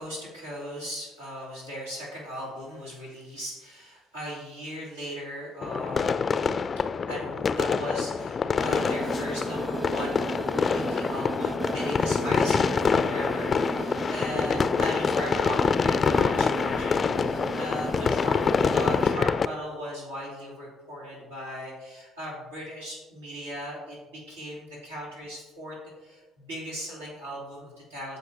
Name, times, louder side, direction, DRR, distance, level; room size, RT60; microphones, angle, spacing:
voice 1, 0.0-6.5 7.1-10.3 10.7-18.4 18.7-28.2, equal, 85° right, -6 dB, 2.8 m, -38 dB
sound 1, 5.6-19.5, left 5 dB, 40° left, 0.3 m, -26 dB
sound 2, 8.6-19.2, right 2 dB, 25° right, 1.2 m, -35 dB
14.0 x 5.5 x 2.9 m, 1.2 s
figure-of-eight pair, 55°, 0 cm